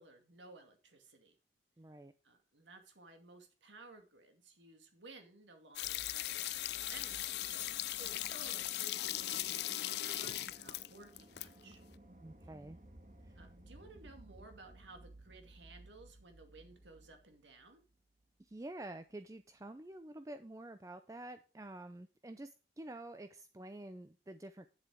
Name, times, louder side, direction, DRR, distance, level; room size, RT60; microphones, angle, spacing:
voice 1, 0.0-1.4 2.2-11.8 13.4-17.8, right 3 dB, 90° right, 5 dB, 2.3 m, -57 dB
voice 2, 1.8-2.1 12.2-12.8 13.2-13.4 18.4-24.7, right 1 dB, 20° right, 10 dB, 0.4 m, -48 dB
sound 1, 5.8-11.5 11.7-11.8, left 14 dB, 70° left, 0.4 m, -39 dB
sound 2, 5.8-18.2 18.5-18.6, right 1 dB, 45° right, 1.9 m, -58 dB
9.8 x 7.7 x 4.9 m, 0.34 s
head